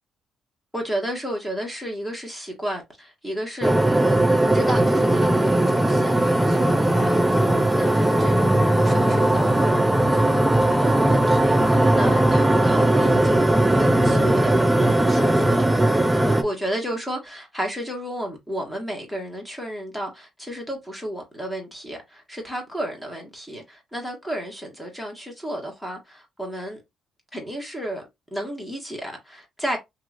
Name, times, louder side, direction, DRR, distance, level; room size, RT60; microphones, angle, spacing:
voice 1, 0.7-3.7 4.5-15.7 16.3-26.8 27.3-28.0 28.3-29.8, equal, 10° left, 1.4 m, -32 dB
sound 1, 3.6-16.4, right 1 dB, 10° right, 0.4 m, -19 dB
3.0 x 2.9 x 2.5 m
cardioid pair, 90°, 0 cm